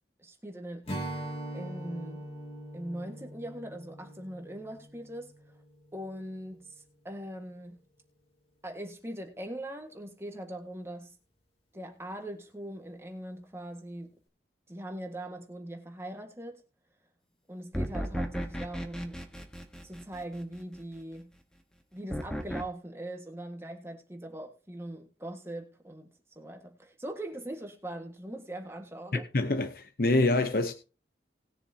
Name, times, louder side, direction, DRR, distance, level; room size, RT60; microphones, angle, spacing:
voice 1, 0.2-1.2 1.5-2.2 2.7-5.3 5.9-7.8 8.6-11.2 11.7-14.1 14.7-16.6 17.5-19.1 19.8-21.3 21.9-29.3, right 1 dB, 15° right, 1.6 m, -41 dB
Strum, 0.9-6.3, right 1 dB, 30° left, 2.3 m, -42 dB
sound 1, 17.7-20.6 22.1-22.6, equal, 5° left, 1.2 m, -35 dB
voice 2, 29.1-30.7, left 2 dB, 55° left, 0.8 m, -26 dB
19.5 x 7.0 x 2.8 m
head